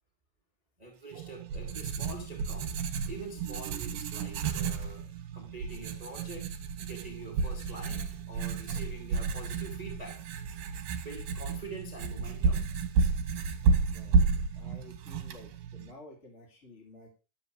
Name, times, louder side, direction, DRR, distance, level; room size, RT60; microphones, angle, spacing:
voice 1, 0.8-5.0 5.3-6.5 6.8-10.2 10.9-12.6, right 2 dB, 15° right, -1 dB, 2.2 m, -45 dB
Writing, 1.1-15.9, right 4 dB, 75° right, 2.7 m, -31 dB
voice 2, 13.8-14.2 14.5-17.1, left 2 dB, 20° left, 0 dB, 3.2 m, -52 dB
12.5 x 4.5 x 7.8 m, 0.34 s
omnidirectional pair, 4.1 m